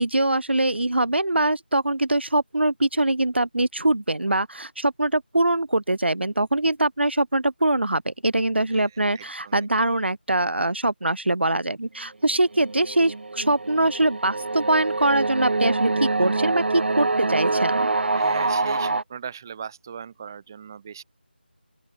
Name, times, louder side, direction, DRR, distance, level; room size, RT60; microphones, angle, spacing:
voice 1, 0.0-17.9, right 2 dB, 90° right, 0.9 m, -23 dB
voice 2, 8.7-9.7 18.2-21.0, right 7 dB, 20° right, 0.9 m, -39 dB
sound 1, 12.3-19.0, right 3 dB, 75° right, 0.4 m, -25 dB
open air
figure-of-eight pair, 170°, 6 cm